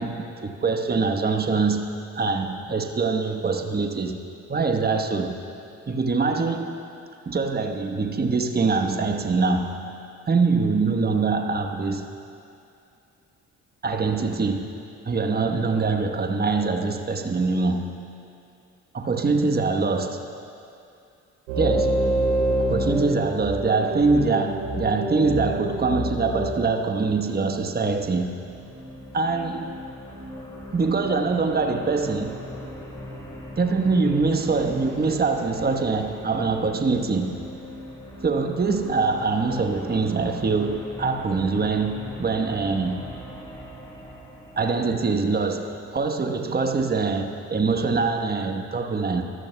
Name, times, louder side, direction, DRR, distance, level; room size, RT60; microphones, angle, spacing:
voice 1, 0.0-4.2 4.5-5.4 5.9-6.7 7.3-9.7 10.3-12.1 13.8-14.7 15.1-17.9 18.9-20.3 21.6-22.0 22.7-28.3 29.1-29.7 30.7-32.4 33.6-37.4 38.2-43.0 44.6-49.2, right 4 dB, 25° right, 5 dB, 1.2 m, -24 dB
sound 1, 21.5-26.5, right 1 dB, 85° right, 2.8 m, -26 dB
sound 2, 27.6-44.6, equal, 10° left, 3.5 m, -40 dB
25.0 x 12.5 x 2.3 m, 2.5 s
hypercardioid pair, 45°, 39 cm